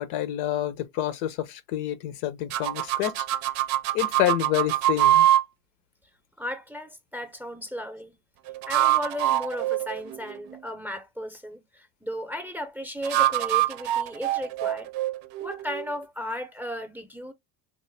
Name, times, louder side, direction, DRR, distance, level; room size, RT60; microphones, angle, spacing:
voice 1, 0.0-3.2 3.9-5.3, left 12 dB, 85° left, 0.7 m, -28 dB
sound 1, 2.5-5.4 8.5-10.6 13.0-15.9, right 13 dB, 80° right, 0.6 m, -24 dB
voice 2, 6.4-8.1 8.7-14.9 15.4-17.3, equal, 5° right, 0.5 m, -35 dB
3.1 x 2.0 x 3.2 m
supercardioid pair, 95°, 46 cm